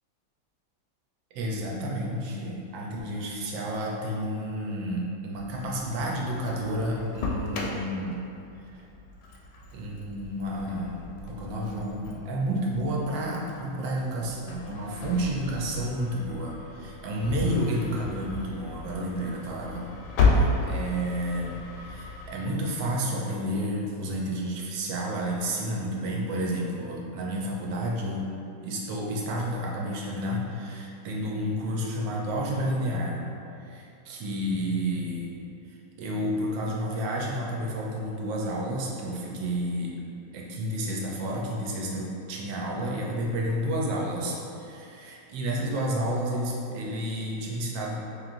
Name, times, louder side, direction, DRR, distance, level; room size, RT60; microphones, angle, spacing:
voice 1, 1.3-8.2 8.7-8.8 9.7-19.9 20.3-28.3 28.6-33.2 33.6-35.3 36.0-39.9 40.3-48.0, equal, 80° right, -2 dB, 1.3 m, -30 dB
Engine starting, 5.4-22.3, left 3 dB, 75° left, 1.1 m, -33 dB
4.2 x 2.9 x 2.5 m, 2.7 s
omnidirectional pair, 2.1 m